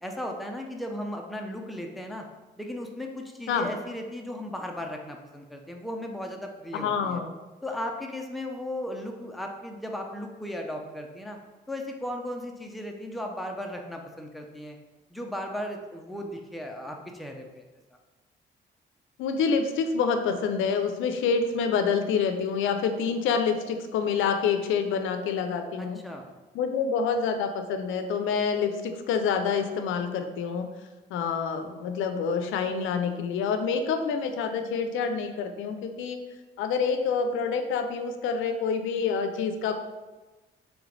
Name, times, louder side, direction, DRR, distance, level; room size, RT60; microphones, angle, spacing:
voice 1, 0.0-2.3 2.6-7.2 7.6-11.4 11.7-14.8 15.1-17.6 25.8-26.3, left 1 dB, ahead, 2 dB, 0.5 m, -36 dB
voice 2, 6.7-7.3 19.2-26.0 26.5-30.7 31.1-36.2 36.6-39.8, left 6 dB, 85° left, 7 dB, 0.4 m, -27 dB
3.3 x 3.1 x 3.9 m, 1.2 s
cardioid pair, 90°, 20 cm